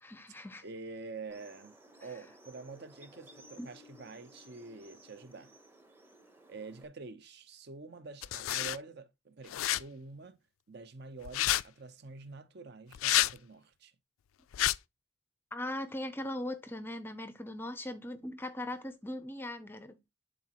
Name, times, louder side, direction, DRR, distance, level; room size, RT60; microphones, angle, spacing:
voice 1, 0.0-0.6 3.6-3.7 15.5-20.0, left 1 dB, 10° left, 0.5 m, -39 dB
voice 2, 0.6-5.5 6.5-10.4 10.7-13.9, right 3 dB, 50° right, 0.7 m, -47 dB
sound 1, 1.3-6.9, right 1 dB, 10° right, 0.8 m, -57 dB
sound 2, 8.2-8.8 9.5-9.8 11.2-11.6 12.9-13.3 14.5-14.8, left 15 dB, 80° left, 0.3 m, -29 dB
11.0 x 4.1 x 2.9 m
head